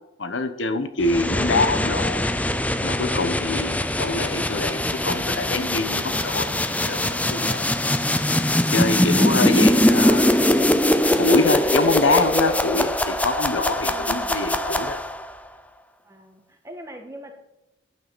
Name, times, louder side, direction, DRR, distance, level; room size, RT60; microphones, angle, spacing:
voice 1, 0.2-2.2 2.8-6.5 6.8-7.6 8.7-10.4 11.2-15.0, left 3 dB, 90° left, 9 dB, 1.1 m, -25 dB
sound 1, 1.0-15.3, left 1 dB, 10° left, 0.5 m, -22 dB
voice 2, 13.8-14.5 16.0-17.3, equal, 15° right, 3 dB, 1.7 m, -43 dB
11.5 x 9.3 x 4.1 m, 0.92 s
head